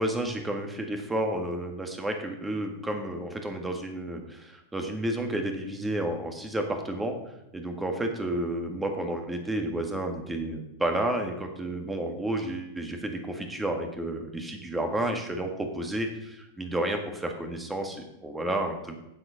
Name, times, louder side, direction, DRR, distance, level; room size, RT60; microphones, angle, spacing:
voice 1, 0.0-7.2 7.5-19.0, right 1 dB, 10° right, 4 dB, 1.7 m, -31 dB
8.9 x 7.6 x 5.7 m, 0.88 s
supercardioid pair, 135°, 0 cm